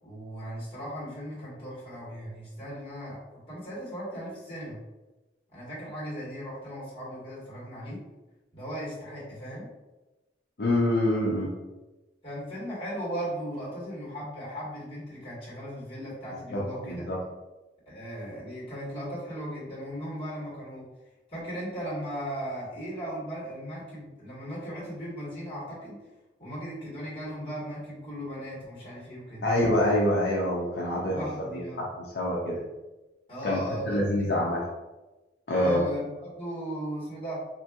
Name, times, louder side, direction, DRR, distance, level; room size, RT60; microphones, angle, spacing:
voice 1, 0.0-4.8 5.5-8.0 8.5-9.7 12.2-17.1 17.9-20.9 21.3-26.0 26.4-29.4 30.9-31.8 33.3-34.3 35.5-37.4, equal, 30° left, -7 dB, 1.4 m, -37 dB
voice 2, 10.6-11.5 16.5-17.2 29.4-32.6 33.4-34.6 35.5-35.8, left 1 dB, 65° left, -4 dB, 0.5 m, -26 dB
3.7 x 2.6 x 2.3 m, 1.1 s
head